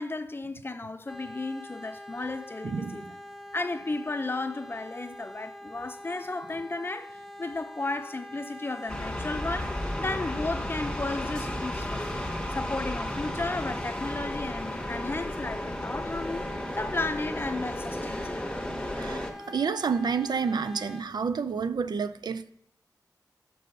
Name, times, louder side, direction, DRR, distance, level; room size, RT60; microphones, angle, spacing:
voice 1, 0.0-3.0 3.5-12.2 12.5-16.5 16.8-18.4, left 2 dB, 30° left, 0.5 m, -34 dB
sound 1, 1.1-21.0, left 1 dB, 5° right, 0.7 m, -44 dB
voice 2, 2.6-3.1 18.9-22.5, right 5 dB, 85° right, 0.4 m, -29 dB
sound 2, 8.9-19.3, left 1 dB, 15° left, 1.0 m, -34 dB
5.4 x 5.3 x 6.5 m
wide cardioid pair, 80°, 7 cm